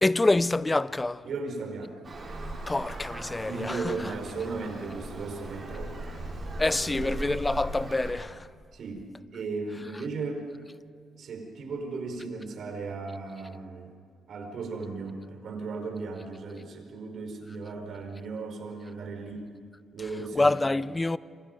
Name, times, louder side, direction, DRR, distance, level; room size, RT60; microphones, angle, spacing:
voice 1, 0.0-1.2 2.7-4.1 6.6-8.5 20.3-21.2, left 2 dB, 15° left, 0.7 m, -26 dB
voice 2, 1.2-1.9 3.4-5.9 6.8-7.2 8.7-9.1 9.3-10.4 11.2-13.9 14.3-19.5 19.9-20.6, right 4 dB, 60° right, 4.9 m, -36 dB
Traffic noise roadway noise, 2.0-8.1, right 1 dB, 35° right, 6.9 m, -38 dB
27.5 x 26.0 x 5.4 m
cardioid pair, 90°, 0 cm